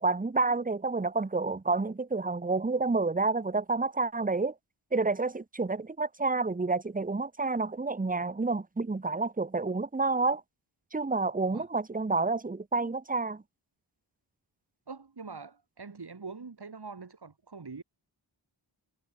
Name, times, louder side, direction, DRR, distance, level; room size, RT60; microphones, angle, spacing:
voice 1, 0.0-4.5 4.9-10.4 10.9-13.4, right 3 dB, 15° right, 0.9 m, -29 dB
voice 2, 14.9-17.8, right 4 dB, 50° right, 4.3 m, -44 dB
wide cardioid pair, 65°, 49 cm